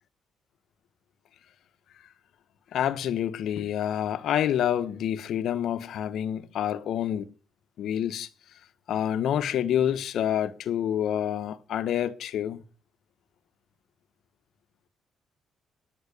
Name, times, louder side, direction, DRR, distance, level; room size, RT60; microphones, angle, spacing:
voice 1, 2.7-7.3 7.8-8.3 8.9-12.6, left 10 dB, 75° left, 1.0 m, -27 dB
10.5 x 9.3 x 6.6 m
cardioid pair, 90°, 0 cm